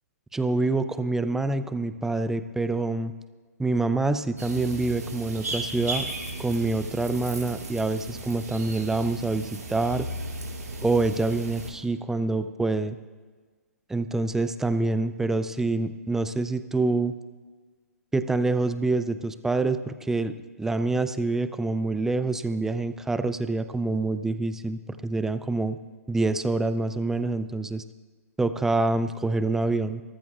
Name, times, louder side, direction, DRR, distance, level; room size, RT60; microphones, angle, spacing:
voice 1, 0.3-3.1 3.6-6.1 6.4-10.1 10.8-13.0 13.9-17.1 18.1-25.8 26.1-27.8 28.4-30.0, right 3 dB, 5° right, 11 dB, 0.4 m, -26 dB
sound 1, 4.4-11.7, right 2 dB, 75° right, 2.4 m, -35 dB
27.0 x 14.0 x 2.4 m, 1.4 s
figure-of-eight pair, 125°, 9 cm